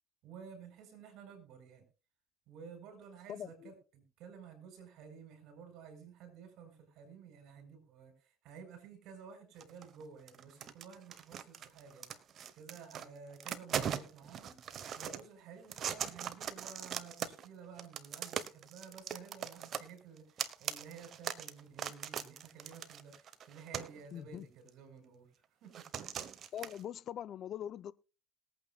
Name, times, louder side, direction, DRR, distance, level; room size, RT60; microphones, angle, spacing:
voice 1, 0.2-1.8 2.5-12.1 12.5-14.6 14.9-25.3 25.6-25.9, right 6 dB, 65° right, 5.2 m, -53 dB
voice 2, 3.3-3.7 24.1-24.5 26.5-27.9, left 10 dB, 55° left, 0.5 m, -42 dB
sound 1, 9.6-10.0 10.3-13.1 13.3-15.2 15.6-17.5 17.8-24.0 24.7-24.8 25.7-26.8, right 8 dB, 50° right, 1.1 m, -40 dB
21.0 x 8.8 x 2.4 m
supercardioid pair, 90°, 0 cm